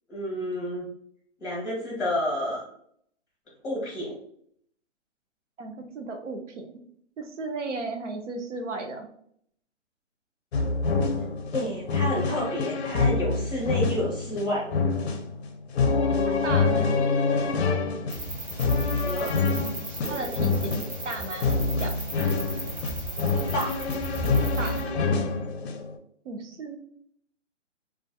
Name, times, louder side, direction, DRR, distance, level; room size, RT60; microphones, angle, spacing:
voice 1, 0.1-0.9 1.4-2.6 3.6-4.2 11.5-14.7 19.0-19.3 23.5-23.7, equal, 5° left, -12 dB, 0.5 m, -30 dB
voice 2, 5.6-6.7 7.2-9.1 16.3-17.0 20.1-22.0 24.6-24.8 26.2-26.8, right 3 dB, 80° right, 4 dB, 0.6 m, -35 dB
sound 1, 10.5-25.9, left 4 dB, 60° left, 0.5 m, -26 dB
sound 2, 18.1-24.8, right 1 dB, 35° right, 0.7 m, -36 dB
2.3 x 2.2 x 2.6 m, 0.65 s
hypercardioid pair, 160°, 36 cm